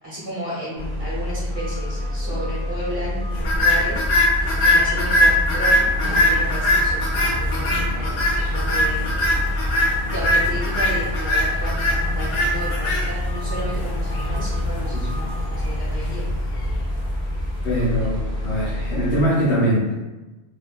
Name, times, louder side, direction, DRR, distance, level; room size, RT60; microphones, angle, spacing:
voice 1, 0.0-9.2 10.1-16.3, right 1 dB, 35° right, -8 dB, 0.7 m, -33 dB
sound 1, 0.8-19.3, left 1 dB, 10° left, 0.3 m, -27 dB
sound 2, 3.4-17.7, left 1 dB, 70° left, 0.8 m, -22 dB
voice 2, 17.6-20.0, equal, 85° left, -10 dB, 1.2 m, -22 dB
2.8 x 2.1 x 2.3 m, 1.1 s
omnidirectional pair, 1.1 m